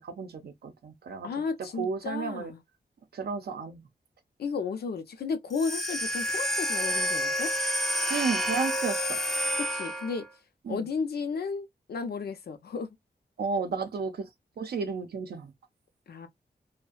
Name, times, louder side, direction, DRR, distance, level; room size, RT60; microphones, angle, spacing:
voice 1, 0.0-1.3 1.8-2.5 3.1-3.8 8.1-9.2 10.7-10.9 13.4-14.3 14.6-15.5, right 5 dB, 70° right, 0.5 m, -32 dB
voice 2, 1.2-2.6 4.4-7.5 9.6-10.3 10.7-13.0 16.1-16.3, left 5 dB, 70° left, 0.6 m, -33 dB
sound 1, 5.5-10.3, equal, ahead, 0.3 m, -29 dB
2.5 x 2.1 x 2.3 m
wide cardioid pair, 130°, 17 cm